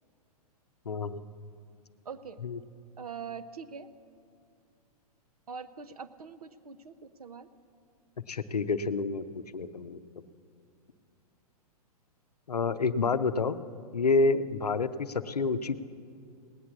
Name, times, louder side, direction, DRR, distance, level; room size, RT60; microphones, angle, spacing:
voice 1, 0.9-1.2 2.4-2.6 8.3-10.0 12.5-13.6 13.9-15.8, left 4 dB, 80° left, 12 dB, 0.6 m, -28 dB
voice 2, 2.0-2.4 3.0-3.9 5.5-7.5, right 6 dB, 70° right, 11 dB, 0.7 m, -43 dB
18.0 x 8.5 x 7.0 m, 2.3 s
figure-of-eight pair, 110°, 20 cm